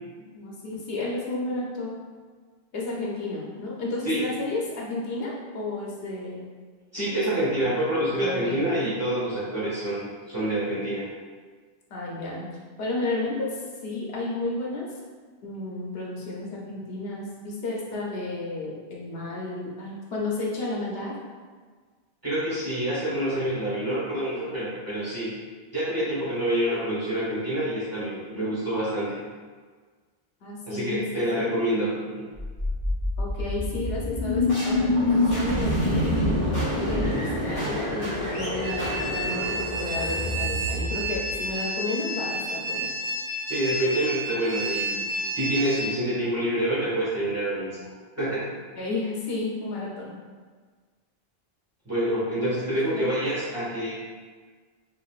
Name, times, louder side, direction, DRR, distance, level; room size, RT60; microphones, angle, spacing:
voice 1, 0.2-1.9 2.7-6.5 7.3-7.4 7.9-8.6 11.9-12.5 12.8-14.9 15.4-21.1 28.2-28.5 30.4-31.0 31.3-31.5 33.2-42.9 48.8-50.2 52.9-53.1, left 2 dB, 75° left, -3 dB, 0.9 m, -32 dB
voice 2, 6.9-11.1 22.2-25.4 25.7-29.2 30.7-32.2 43.5-45.1 45.3-48.5 51.8-53.9, right 1 dB, 15° right, -11 dB, 1.4 m, -27 dB
sound 1, 32.4-41.5, left 1 dB, 35° left, 1.3 m, -26 dB
sound 2, 38.6-45.8, right 1 dB, 40° right, 0.9 m, -31 dB
5.0 x 2.6 x 2.3 m, 1.5 s
omnidirectional pair, 1.0 m